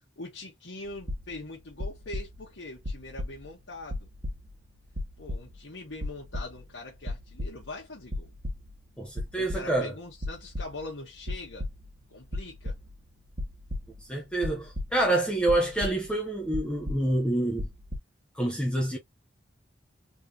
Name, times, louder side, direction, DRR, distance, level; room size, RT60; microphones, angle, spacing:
voice 1, 0.2-4.1 5.2-8.3 9.3-11.7 12.1-12.8, left 2 dB, 70° left, 1.5 m, -42 dB
sound 1, 0.9-1.5 1.8-2.6 2.8-3.6 3.9-4.7 4.9-5.7 6.0-6.8 7.0-7.8 8.1-8.7 9.0-9.9 10.2-11.0 11.2-12.0 12.3-13.0 13.3-15.2 15.5-16.2 16.5-17.3 17.5-18.0, left 1 dB, 55° right, 1.5 m, -35 dB
voice 2, 9.0-9.9 14.1-17.7 18.3-19.0, right 1 dB, 5° left, 0.7 m, -27 dB
3.7 x 3.3 x 2.8 m
head